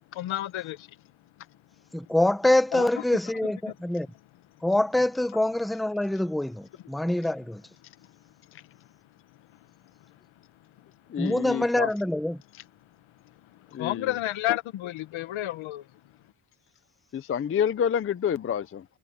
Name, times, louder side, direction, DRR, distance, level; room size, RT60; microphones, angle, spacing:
voice 1, 0.1-0.9 2.7-2.9 13.8-15.9, left 15 dB, 85° left, 1.3 m, -30 dB
voice 2, 1.9-4.1 4.6-7.6 11.2-12.4, left 1 dB, ahead, 0.8 m, -25 dB
voice 3, 11.1-11.9 13.7-14.1 17.1-18.8, left 8 dB, 30° left, 0.5 m, -28 dB
cardioid pair, 175°, 46 cm